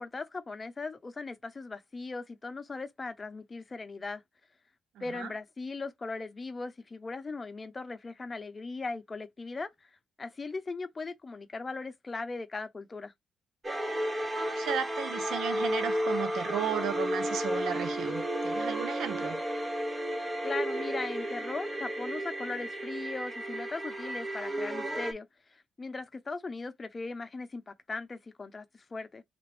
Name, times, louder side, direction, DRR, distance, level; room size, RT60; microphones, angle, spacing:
voice 1, 0.0-4.2 5.0-9.9 10.2-13.1 20.4-29.2, left 3 dB, 30° left, 0.7 m, -39 dB
voice 2, 4.9-5.3 14.3-19.4, right 8 dB, 75° right, 0.7 m, -35 dB
sound 1, 13.6-25.1, equal, 20° right, 0.6 m, -33 dB
3.3 x 2.5 x 3.3 m
cardioid pair, 90°, 0 cm